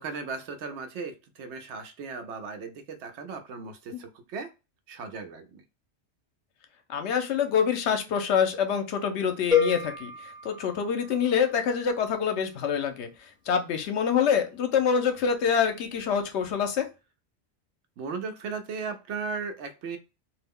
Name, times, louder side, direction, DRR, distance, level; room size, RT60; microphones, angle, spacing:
voice 1, 0.0-4.5 4.9-5.6 18.0-20.0, right 4 dB, 75° right, 7 dB, 0.9 m, -36 dB
voice 2, 6.9-16.9, left 7 dB, 75° left, 7 dB, 0.9 m, -26 dB
sound 1, 9.5-11.6, left 7 dB, 5° right, 0.4 m, -28 dB
2.4 x 2.0 x 3.5 m, 0.28 s
omnidirectional pair, 1.2 m